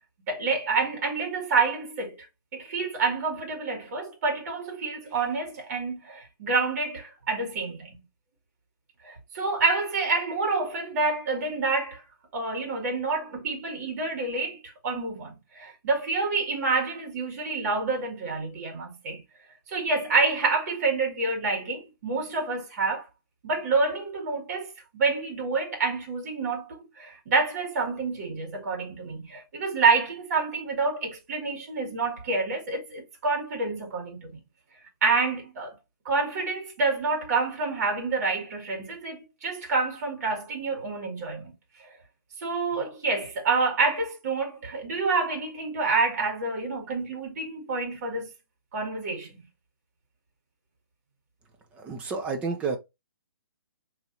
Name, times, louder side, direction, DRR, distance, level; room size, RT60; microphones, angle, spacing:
voice 1, 0.3-2.2 2.5-8.0 9.0-12.0 12.3-19.2 19.7-23.1 23.4-34.4 35.0-35.8 36.1-41.5 42.4-48.3 48.7-49.4, right 4 dB, 45° right, 1.8 m, -28 dB
voice 2, 51.7-52.8, right 4 dB, 10° right, 0.5 m, -30 dB
5.3 x 3.0 x 2.6 m
hypercardioid pair, 160°, 12 cm